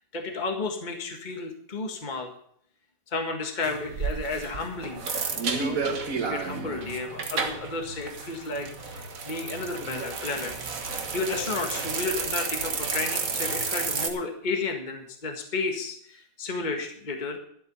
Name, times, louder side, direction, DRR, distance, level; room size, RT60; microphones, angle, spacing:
voice 1, 0.1-2.3 3.1-5.1 5.5-10.5 11.1-17.4, left 3 dB, 25° left, 4 dB, 1.8 m, -32 dB
sound 1, 3.6-14.1, right 4 dB, 55° right, 1.8 m, -31 dB
13.0 x 8.0 x 6.9 m, 0.66 s
omnidirectional pair, 1.9 m